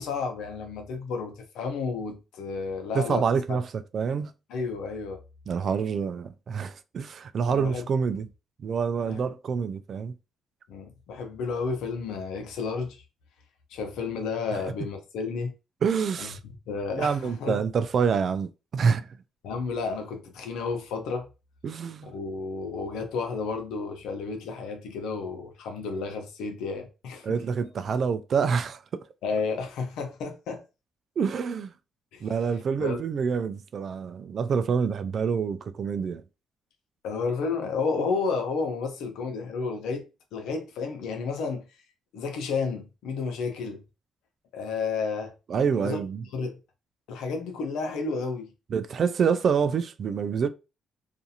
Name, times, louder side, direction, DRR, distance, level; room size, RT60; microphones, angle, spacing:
voice 1, 0.0-3.3 4.5-5.2 7.5-7.8 9.0-9.2 10.7-13.0 13.7-15.5 16.2-16.3 16.7-17.6 19.4-21.3 22.0-27.4 29.2-30.6 32.1-32.3 32.8-33.0 37.0-40.0 40.3-41.6 42.1-43.8 44.5-45.3 45.8-46.0 46.3-46.6 47.1-48.5, left 4 dB, 85° left, 0.7 m, -31 dB
voice 2, 2.9-4.3 5.5-8.3 8.6-10.1 14.5-14.6 15.8-16.4 16.9-19.1 21.6-22.1 27.2-28.8 31.2-31.7 32.2-36.2 45.5-46.2 48.7-50.5, right 6 dB, 55° right, 0.3 m, -27 dB
2.5 x 2.4 x 2.7 m
cardioid pair, 90°, 0 cm